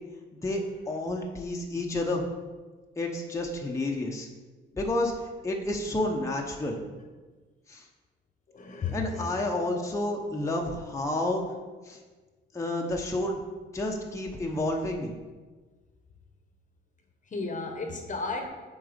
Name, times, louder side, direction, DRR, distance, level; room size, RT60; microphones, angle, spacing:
voice 1, 0.9-2.2 2.9-4.3 4.7-6.8 7.7-7.8 8.9-11.4 11.8-12.0 12.5-13.4 13.7-15.1, left 2 dB, 15° left, 0 dB, 0.9 m, -30 dB
voice 2, 8.5-9.4 17.3-18.5, left 3 dB, 40° left, 4 dB, 1.0 m, -33 dB
7.7 x 3.9 x 5.1 m, 1.3 s
cardioid pair, 90°, 20 cm